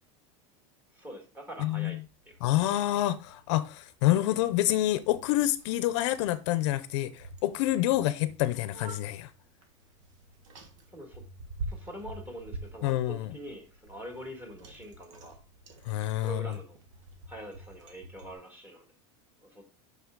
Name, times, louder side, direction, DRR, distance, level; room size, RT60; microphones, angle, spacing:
voice 1, 0.9-2.0 2.2-2.5 10.9-11.2 11.7-15.4 16.2-16.8 17.3-18.8 19.4-19.7, right 1 dB, 10° right, 1.7 m, -44 dB
voice 2, 1.6-2.0 2.4-9.3 12.8-13.3 15.9-16.5, left 14 dB, 65° left, 0.6 m, -27 dB
Bicycle, 2.0-18.3, right 2 dB, 90° right, 1.5 m, -47 dB
6.0 x 5.8 x 3.7 m
supercardioid pair, 165°, 16 cm